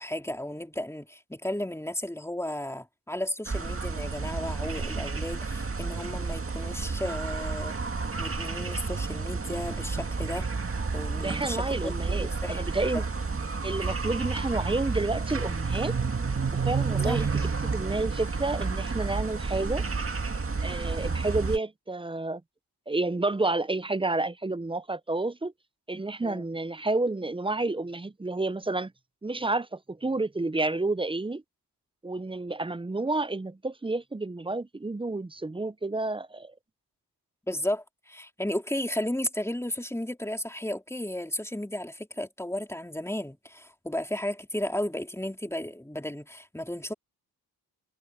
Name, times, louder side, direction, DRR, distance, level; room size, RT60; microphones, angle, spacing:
voice 1, 0.0-7.8 8.2-10.5 10.9-12.6 12.9-13.0 17.0-17.3 26.2-26.5 37.5-46.9, left 1 dB, 5° left, 3.3 m, -34 dB
sound 1, 3.5-21.6, right 4 dB, 30° right, 1.9 m, -31 dB
voice 2, 11.2-13.1 13.6-16.0 16.6-19.8 20.6-22.4 22.9-25.5 25.9-28.9 29.2-31.4 32.0-36.5, right 2 dB, 15° right, 0.6 m, -30 dB
cardioid pair, 75°, 41 cm